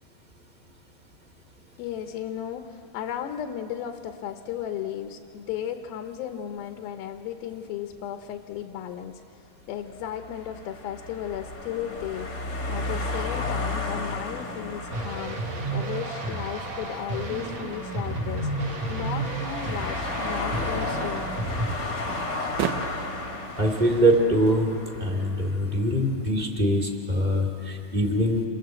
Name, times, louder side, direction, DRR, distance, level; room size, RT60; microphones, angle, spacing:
voice 1, 1.8-15.4 15.7-21.3, left 10 dB, 75° left, 6 dB, 2.6 m, -35 dB
sound 1, 10.1-25.5, left 2 dB, 40° left, 1.5 m, -33 dB
sound 2, 14.9-21.8, right 2 dB, 55° right, 2.1 m, -32 dB
sound 3, 20.0-26.5, right 10 dB, 75° right, 2.1 m, -39 dB
voice 2, 23.6-24.7 25.0-28.4, equal, 15° right, 0 dB, 1.8 m, -23 dB
28.5 x 19.5 x 7.8 m, 2.6 s
omnidirectional pair, 4.5 m